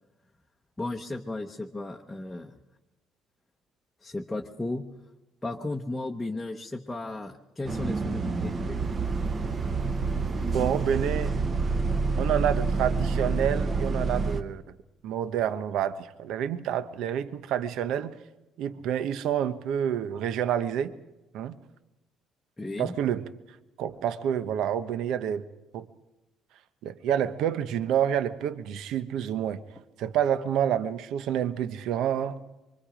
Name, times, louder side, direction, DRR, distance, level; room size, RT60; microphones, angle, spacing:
voice 1, 0.8-2.6 4.0-4.8 5.4-8.9 22.6-22.9, left 2 dB, 10° left, 0.9 m, -34 dB
Bus, 7.6-14.4, right 4 dB, 25° right, 0.9 m, -28 dB
voice 2, 10.5-11.3 12.2-14.6 15.0-18.1 18.6-20.9 21.3-21.6 22.8-23.2 23.8-25.5 25.7-25.9 26.8-29.6 30.0-32.4, right 9 dB, 65° right, 0.9 m, -28 dB
25.0 x 24.5 x 5.1 m
cardioid pair, 160°, 0 cm